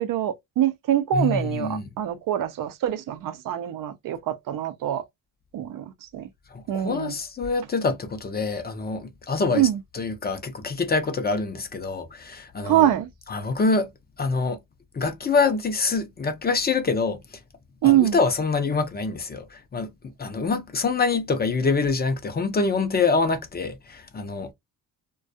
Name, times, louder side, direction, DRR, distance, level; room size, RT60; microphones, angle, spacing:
voice 1, 0.0-5.0 5.5-5.8 6.1-6.3 6.7-7.1 9.5-9.8 12.6-13.1 17.8-18.2, right 12 dB, 65° right, 0.5 m, -24 dB
voice 2, 1.1-1.9 6.5-9.7 9.9-12.9 13.3-13.9 14.2-14.6 14.9-17.4 17.8-19.9 20.2-24.5, left 4 dB, 30° left, 0.6 m, -25 dB
2.3 x 2.3 x 2.6 m
cardioid pair, 110°, 34 cm